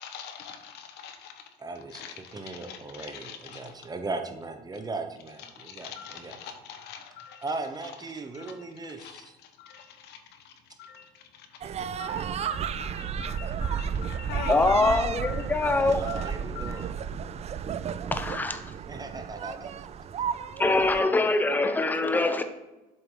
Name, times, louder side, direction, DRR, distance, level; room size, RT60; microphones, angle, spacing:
voice 1, 0.0-1.5 1.9-3.9 5.4-7.5 7.8-7.9 8.3-11.6 12.0-16.8, left 7 dB, 85° left, 7 dB, 1.0 m, -43 dB
voice 2, 1.6-2.0 2.3-6.4 7.4-9.4 15.6-16.8 18.9-19.9, right 3 dB, 25° right, 6 dB, 0.9 m, -38 dB
sound 1, 11.6-21.0, right 7 dB, 40° right, 0.4 m, -33 dB
voice 3, 14.5-16.0 18.1-18.7 20.6-22.4, left 2 dB, 10° left, 8 dB, 0.7 m, -24 dB
7.5 x 5.8 x 3.8 m, 1.0 s
cardioid pair, 110°, 17 cm